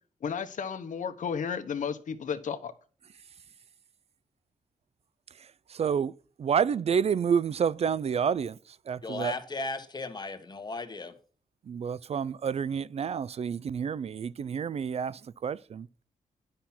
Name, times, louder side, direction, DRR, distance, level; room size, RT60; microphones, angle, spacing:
voice 1, 0.2-2.7, left 6 dB, 65° left, 1.0 m, -33 dB
voice 2, 5.7-6.1 6.4-8.6 8.9-9.3 11.7-15.9, right 7 dB, 50° right, 0.4 m, -29 dB
voice 3, 9.0-11.1, left 3 dB, 30° left, 1.3 m, -36 dB
10.0 x 5.7 x 5.9 m
cardioid pair, 95°, 14 cm